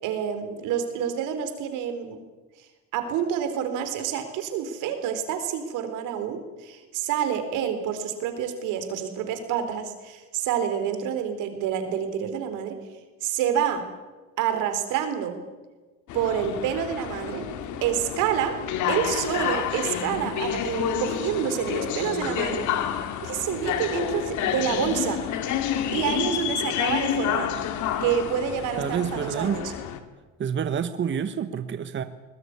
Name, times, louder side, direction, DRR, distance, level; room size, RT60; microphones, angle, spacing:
voice 1, 0.0-2.2 2.9-12.8 13.2-13.8 14.4-15.3 16.1-17.4 17.8-18.6 18.9-22.7 23.2-25.2 25.9-27.5 28.0-29.7, right 9 dB, 85° right, 8 dB, 4.2 m, -28 dB
sound 1, 16.1-30.0, left 9 dB, 75° left, 2.5 m, -29 dB
voice 2, 28.8-29.6 30.4-32.0, right 7 dB, 40° right, 10 dB, 1.3 m, -28 dB
21.5 x 20.0 x 9.8 m, 1.2 s
cardioid pair, 100°, 30 cm